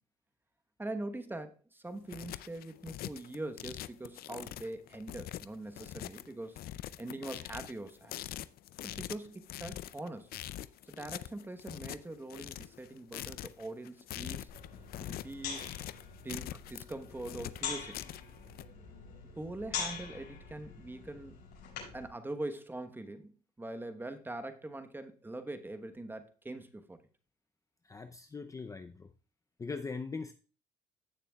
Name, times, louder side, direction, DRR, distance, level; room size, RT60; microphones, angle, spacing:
voice 1, 0.8-6.6 7.0-8.2 8.8-10.3 10.8-14.5 15.0-15.6 16.2-18.1 19.4-21.3 21.9-27.0, right 2 dB, 10° right, 8 dB, 1.1 m, -43 dB
sound 1, 1.9-18.6, left 13 dB, 65° left, 0.5 m, -44 dB
sound 2, 14.5-22.1, left 6 dB, 80° left, 5.6 m, -43 dB
voice 2, 27.9-29.1 29.6-30.3, left 4 dB, 20° left, 7 dB, 0.5 m, -40 dB
16.0 x 6.8 x 2.3 m, 0.35 s
cardioid pair, 110°, 17 cm